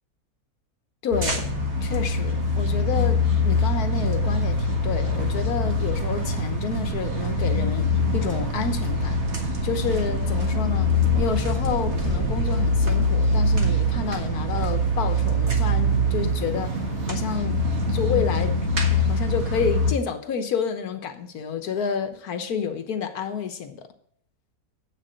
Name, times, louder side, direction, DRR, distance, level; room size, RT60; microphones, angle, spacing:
voice 1, 1.0-1.5 1.8-10.9 11.2-16.7 17.1-17.6 17.9-18.5 18.9-23.9, left 6 dB, 80° left, 1.5 m, -29 dB
sound 1, 1.1-19.9, left 1 dB, 50° right, 1.9 m, -23 dB
8.2 x 6.8 x 6.3 m
omnidirectional pair, 1.6 m